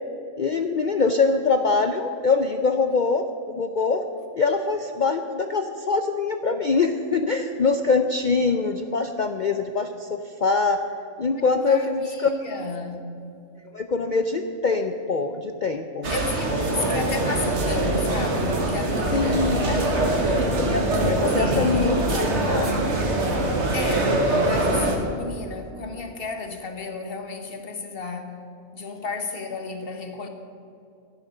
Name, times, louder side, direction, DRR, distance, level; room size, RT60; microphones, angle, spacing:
voice 1, 0.4-4.0 4.3-10.8 11.2-12.3 13.7-16.1 19.1-19.7 20.4-22.7, left 4 dB, 60° left, 7 dB, 0.5 m, -24 dB
voice 2, 11.2-13.0 16.1-19.9 21.0-22.0 23.7-28.4 28.7-30.3, left 3 dB, 45° left, 5 dB, 1.4 m, -33 dB
sound 1, 16.0-25.0, right 2 dB, 55° right, 1.8 m, -23 dB
12.0 x 10.5 x 6.5 m, 2.5 s
omnidirectional pair, 1.4 m